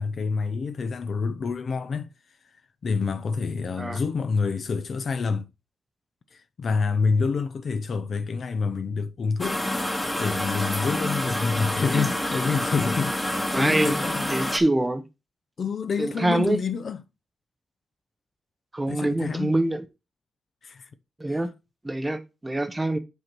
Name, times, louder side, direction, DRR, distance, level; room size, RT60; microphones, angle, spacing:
voice 1, 0.0-2.1 2.8-5.5 6.3-9.6 10.2-14.4 15.6-17.0 18.9-19.5 20.6-20.9, left 5 dB, 45° left, 0.7 m, -27 dB
sound 1, 9.4-14.6, left 1 dB, 10° left, 1.3 m, -28 dB
voice 2, 13.5-14.0 14.3-15.0 16.0-16.6 18.7-19.8 21.2-21.5 21.8-23.0, right 1 dB, 10° right, 0.8 m, -25 dB
8.1 x 4.5 x 6.1 m
wide cardioid pair, 175°, 0 cm